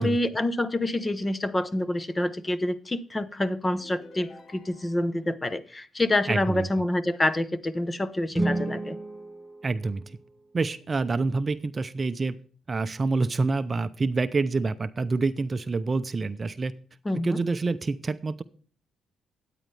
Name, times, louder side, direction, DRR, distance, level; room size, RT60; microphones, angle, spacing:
voice 1, 0.0-9.0 17.0-17.4, left 1 dB, 20° left, 0.9 m, -27 dB
sound 1, 3.7-5.2, left 2 dB, 50° left, 1.5 m, -49 dB
voice 2, 6.3-6.7 9.6-10.2 10.5-12.4 12.7-16.7 17.1-18.4, right 3 dB, 30° right, 0.6 m, -27 dB
sound 2, 8.3-10.5, right 2 dB, 5° right, 0.8 m, -32 dB
13.0 x 9.2 x 3.3 m
cardioid pair, 90°, 0 cm